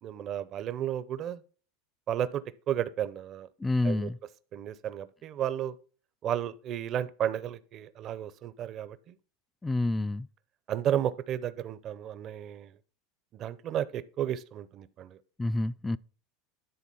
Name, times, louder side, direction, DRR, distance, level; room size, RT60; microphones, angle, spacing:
voice 1, 0.0-1.4 2.1-3.5 3.8-4.1 4.5-5.8 6.2-9.1 10.7-12.7 13.3-15.2, right 10 dB, 45° right, 0.6 m, -33 dB
voice 2, 3.6-4.2 9.6-10.3 15.4-16.0, left 2 dB, 10° left, 0.3 m, -28 dB
10.5 x 3.8 x 5.4 m
supercardioid pair, 110°, 0 cm